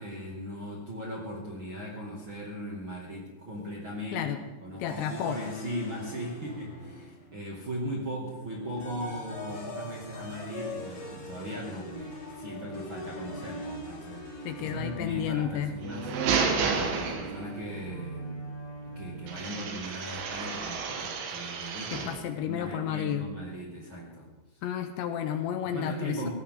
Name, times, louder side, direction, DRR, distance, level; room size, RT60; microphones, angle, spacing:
voice 1, 0.0-4.3 4.6-18.4 18.8-24.3 24.5-24.6 25.6-26.3, equal, 40° right, -5 dB, 2.0 m, -38 dB
voice 2, 4.8-5.4 14.4-15.7 21.9-23.3 24.6-26.3, left 10 dB, 75° left, 7 dB, 2.9 m, -31 dB
sound 1, 4.9-7.4 8.5-19.6, equal, 30° left, 3.2 m, -42 dB
sound 2, 15.8-17.7 19.3-22.3, right 5 dB, 75° right, 3.9 m, -31 dB
18.0 x 16.0 x 3.8 m, 1.1 s
omnidirectional pair, 5.7 m